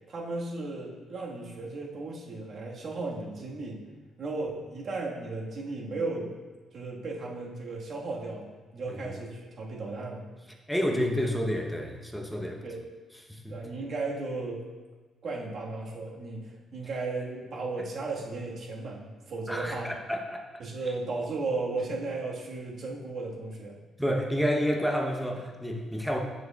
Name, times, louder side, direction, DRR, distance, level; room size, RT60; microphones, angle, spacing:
voice 1, 0.1-3.8 4.2-6.3 6.7-8.5 8.7-10.3 10.9-11.0 12.5-12.8 13.5-14.6 15.2-19.9 20.6-23.8, right 3 dB, 55° right, -2 dB, 1.4 m, -35 dB
voice 2, 10.7-12.6 13.3-13.6 19.5-20.5 24.0-26.2, equal, ahead, 1 dB, 0.8 m, -29 dB
7.2 x 6.5 x 2.3 m, 1.3 s
cardioid pair, 90°, 0 cm